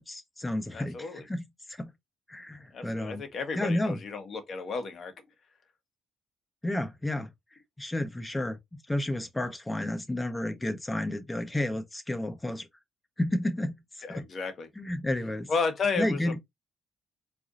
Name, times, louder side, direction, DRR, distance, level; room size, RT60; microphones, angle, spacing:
voice 1, 0.0-1.4 1.7-1.9 2.3-3.2 3.5-4.0 6.6-7.3 7.8-8.6 8.9-12.7 13.2-14.2 14.8-15.5 16.0-16.4, left 1 dB, 15° left, 1.0 m, -31 dB
voice 2, 0.7-1.2 2.7-5.1 14.0-14.7 15.5-16.4, left 4 dB, 55° left, 1.5 m, -32 dB
4.5 x 3.4 x 2.6 m
cardioid pair, 90°, 0 cm